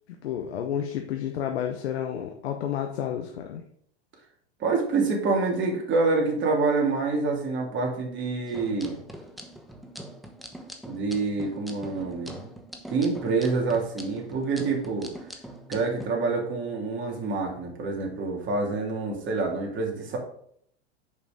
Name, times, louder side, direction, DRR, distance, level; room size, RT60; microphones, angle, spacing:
voice 1, 0.2-3.6, left 9 dB, 80° left, 4 dB, 1.0 m, -30 dB
voice 2, 4.6-9.0 10.8-12.5 12.9-15.1 15.7-20.2, right 3 dB, 35° right, -1 dB, 2.8 m, -27 dB
sound 1, 8.5-16.1, right 1 dB, ahead, 1.0 m, -43 dB
6.7 x 5.5 x 5.2 m, 0.65 s
hypercardioid pair, 105°, 32 cm